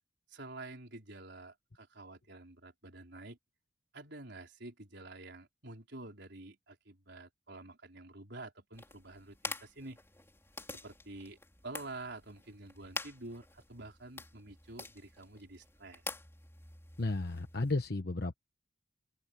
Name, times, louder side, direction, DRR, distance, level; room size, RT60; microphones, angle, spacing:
voice 1, 0.3-3.4 3.9-10.0 10.7-16.0, right 2 dB, 65° right, 4.8 m, -49 dB
sound 1, 8.7-17.7, left 3 dB, 15° left, 4.3 m, -47 dB
voice 2, 17.0-18.3, left 2 dB, 55° left, 1.2 m, -33 dB
head